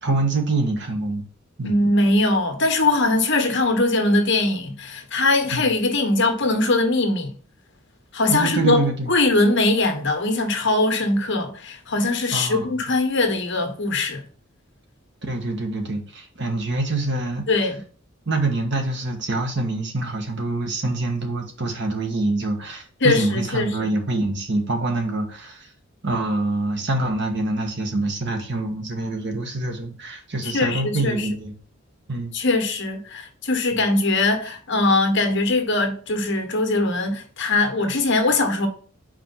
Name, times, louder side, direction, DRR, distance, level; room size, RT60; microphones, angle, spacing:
voice 1, 0.0-1.3 1.6-1.9 5.5-5.7 8.3-9.1 12.3-12.8 15.2-17.5 18.3-25.7 26.0-31.5 32.1-32.3 33.7-33.8, right 2 dB, 60° right, 1.4 m, -25 dB
voice 2, 1.6-7.3 8.1-8.8 9.1-14.2 17.5-17.8 23.0-23.9 30.4-31.3 32.3-38.7, left 2 dB, 60° left, 1.4 m, -21 dB
5.1 x 4.4 x 5.7 m
head